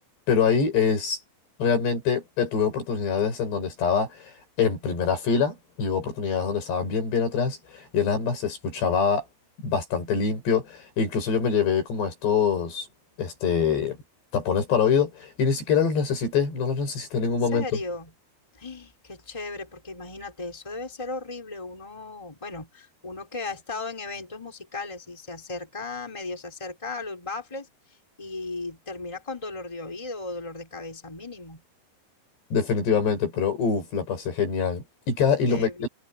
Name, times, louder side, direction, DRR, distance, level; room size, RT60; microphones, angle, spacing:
voice 1, 0.3-1.2 1.6-4.3 4.6-9.3 9.6-12.9 13.2-14.0 14.3-17.6 32.5-35.9, left 6 dB, 75° left, 8.2 m, -24 dB
voice 2, 17.2-18.1 18.5-27.7 28.2-31.6 35.5-35.9, left 3 dB, 5° left, 4.2 m, -36 dB
omnidirectional pair, 4.9 m